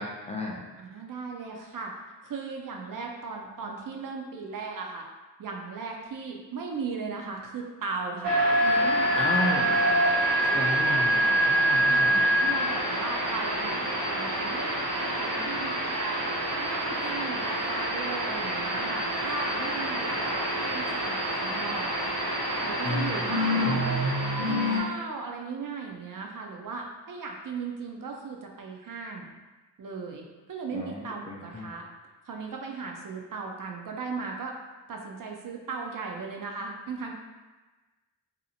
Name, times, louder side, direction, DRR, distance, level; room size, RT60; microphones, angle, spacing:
voice 1, 0.0-0.6 9.1-10.0 10.5-12.3 22.8-23.3 23.6-23.8 30.7-31.7, left 1 dB, 15° left, -3 dB, 0.4 m, -33 dB
voice 2, 0.8-2.0 2.2-5.1 5.4-11.1 11.6-16.2 16.6-21.9 22.6-24.0 24.5-29.3 29.8-31.8 32.2-34.5 34.9-37.1, right 4 dB, 50° right, 1 dB, 0.5 m, -37 dB
sound 1, 8.2-24.8, equal, 75° right, 0.8 m, -26 dB
2.7 x 2.0 x 2.7 m, 1.2 s
cardioid pair, 40°, 43 cm